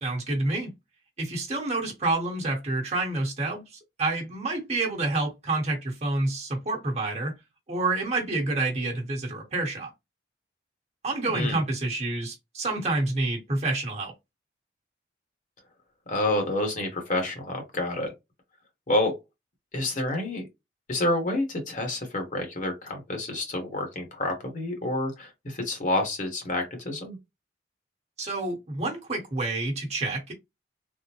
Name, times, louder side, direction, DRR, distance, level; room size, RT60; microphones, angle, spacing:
voice 1, 0.0-0.7 1.2-3.6 4.0-7.3 7.7-9.9 11.0-14.1 28.2-30.3, right 2 dB, 35° right, 1.2 m, -28 dB
voice 2, 16.1-18.1 18.9-19.1 19.7-20.4 20.9-27.2, left 1 dB, 45° left, 1.2 m, -28 dB
3.5 x 2.1 x 2.9 m
head